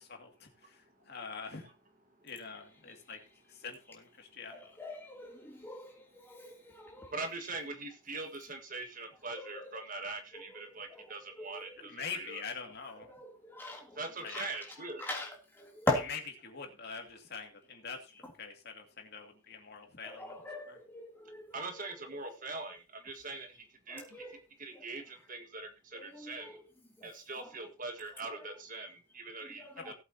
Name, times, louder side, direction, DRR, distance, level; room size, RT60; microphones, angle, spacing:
voice 1, 0.0-1.7 2.2-3.2 3.5-4.6 11.9-13.1 14.2-14.5 16.1-20.4 20.7-20.8 29.8-29.9, left 5 dB, 50° left, 2.4 m, -44 dB
voice 2, 4.5-7.2 9.3-9.8 10.3-11.9 13.1-16.0 20.0-22.4 23.9-24.4 24.7-24.8 25.9-26.6 27.0-27.6 28.2-28.6 29.4-29.9, left 2 dB, 10° left, 3.0 m, -42 dB
voice 3, 7.1-12.4 14.0-15.0 21.5-24.2 24.6-26.6 27.0-29.9, right 3 dB, 40° right, 1.6 m, -42 dB
18.5 x 8.2 x 2.9 m
head